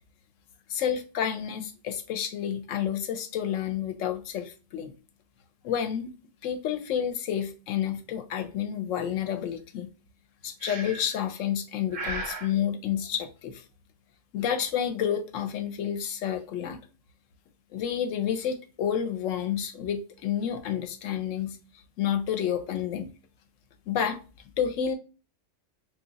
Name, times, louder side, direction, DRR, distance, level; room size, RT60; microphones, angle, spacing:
voice 1, 0.7-4.9 5.6-6.1 6.4-9.9 10.4-13.6 14.3-16.8 17.7-21.6 22.0-23.1 23.9-24.2 24.6-24.9, left 9 dB, 85° left, 1.0 m, -30 dB
Breathing, 10.6-11.2 11.9-12.5, right 2 dB, 55° right, 0.8 m, -35 dB
2.8 x 2.3 x 3.9 m
omnidirectional pair, 1.3 m